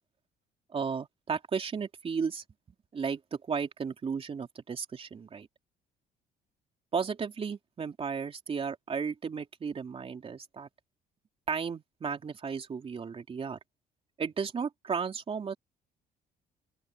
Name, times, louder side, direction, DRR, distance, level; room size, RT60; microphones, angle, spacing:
voice 1, 0.7-2.4 2.9-5.5 6.9-10.7 11.5-13.6 14.2-15.5, right 6 dB, 35° right, 3.0 m, -34 dB
open air
cardioid pair, 110°, 17 cm